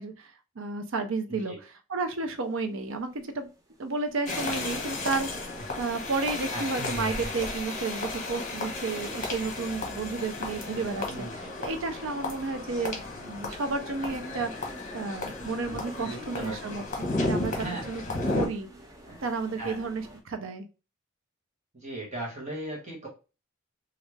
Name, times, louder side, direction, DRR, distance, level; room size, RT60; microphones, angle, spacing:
voice 1, 0.0-1.5 1.9-3.5 3.8-5.5 5.8-11.3 11.6-18.0 18.3-18.7 19.2-20.7, right 3 dB, 65° right, 8 dB, 0.5 m, -32 dB
voice 2, 1.3-1.6 6.5-6.7 11.1-11.6 16.0-16.8 17.5-17.9 18.2-18.4 19.0-19.2 19.6-19.8 21.7-23.1, right 1 dB, 35° right, -2 dB, 1.2 m, -38 dB
sound 1, 2.0-20.2, equal, 15° right, 0.5 m, -49 dB
sound 2, 4.3-18.5, left 2 dB, 35° left, 0.9 m, -34 dB
3.1 x 2.5 x 3.2 m, 0.31 s
head